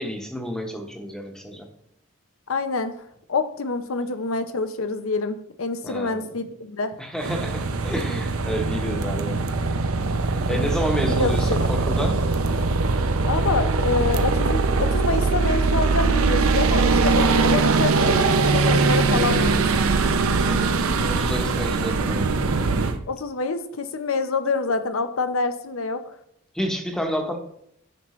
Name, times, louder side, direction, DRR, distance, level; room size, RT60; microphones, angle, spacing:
voice 1, 0.0-1.7 5.8-6.3 7.0-9.5 10.4-12.2 20.4-22.3 26.5-27.4, equal, 5° left, 3 dB, 1.0 m, -30 dB
voice 2, 2.5-6.9 11.0-11.6 13.2-19.6 23.1-26.2, left 3 dB, 70° left, 10 dB, 0.7 m, -27 dB
sound 1, 7.2-23.0, right 3 dB, 80° right, 0.7 m, -21 dB
9.5 x 6.0 x 3.1 m, 0.74 s
head